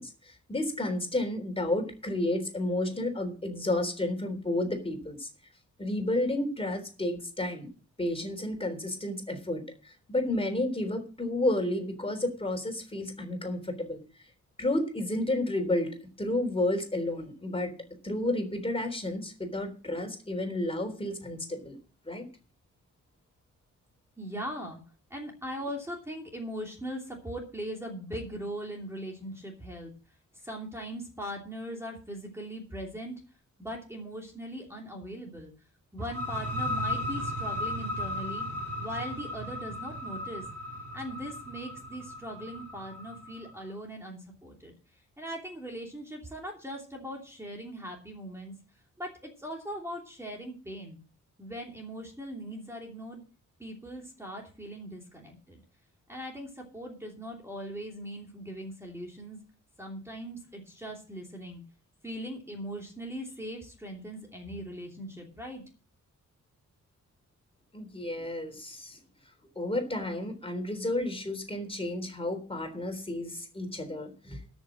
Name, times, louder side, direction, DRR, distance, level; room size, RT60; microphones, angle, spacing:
voice 1, 0.0-5.3 5.8-7.7 8.0-14.0 14.6-17.7 18.0-21.8 22.1-22.3 67.7-69.0 69.6-74.5, left 1 dB, 20° left, 6 dB, 3.6 m, -31 dB
voice 2, 24.2-24.8 25.1-29.9 30.3-33.2 33.6-35.5 35.9-38.5 38.8-40.4 40.9-44.7 45.2-48.6 49.0-51.0 51.4-53.2 53.6-55.6 56.1-59.4 59.8-61.6 62.0-65.6, equal, 10° right, -1 dB, 2.8 m, -40 dB
sound 1, 36.0-43.5, left 1 dB, 50° right, 2.7 m, -35 dB
13.0 x 6.2 x 7.5 m, 0.36 s
wide cardioid pair, 125°, 31 cm